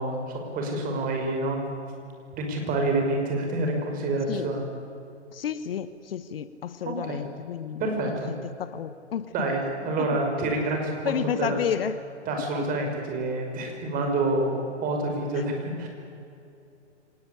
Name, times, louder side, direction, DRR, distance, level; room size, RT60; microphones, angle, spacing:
voice 1, 0.0-1.6 2.4-4.6 7.0-7.3 7.8-8.4 9.3-11.6 12.3-15.9, right 2 dB, 25° right, 2 dB, 5.6 m, -28 dB
voice 2, 5.3-7.9 8.6-9.3 10.0-10.2 11.0-12.0 12.6-12.7 15.3-15.4, left 8 dB, 55° left, 13 dB, 1.2 m, -31 dB
25.0 x 19.0 x 10.0 m, 2.6 s
figure-of-eight pair, 120°, 36 cm